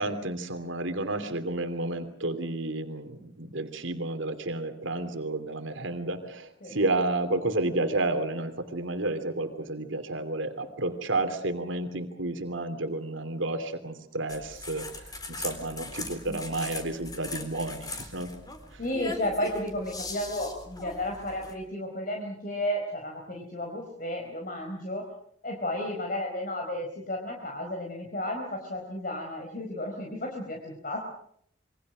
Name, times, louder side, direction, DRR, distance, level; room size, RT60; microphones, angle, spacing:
voice 1, 0.0-14.9 15.3-18.3 18.7-18.8, right 2 dB, 85° right, 7 dB, 2.9 m, -31 dB
sound 1, 14.3-21.5, left 2 dB, 20° left, 4.0 m, -40 dB
voice 2, 18.8-25.1 25.4-31.0, left 1 dB, 45° left, 1 dB, 4.5 m, -33 dB
28.0 x 23.5 x 6.4 m, 0.67 s
head